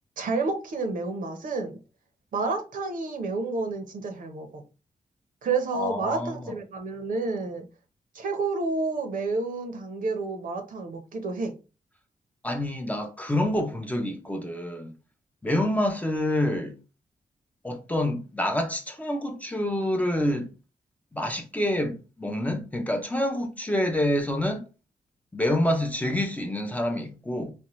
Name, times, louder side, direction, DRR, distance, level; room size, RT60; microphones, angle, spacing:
voice 1, 0.2-1.8 2.3-4.6 5.4-7.6 8.1-11.5, right 3 dB, 70° right, 0.8 m, -30 dB
voice 2, 5.7-6.5 12.4-14.9 15.4-16.8 17.6-20.5 21.1-24.6 25.3-27.5, left 1 dB, 10° left, 0.5 m, -27 dB
4.3 x 2.2 x 3.0 m
wide cardioid pair, 160°, 15 cm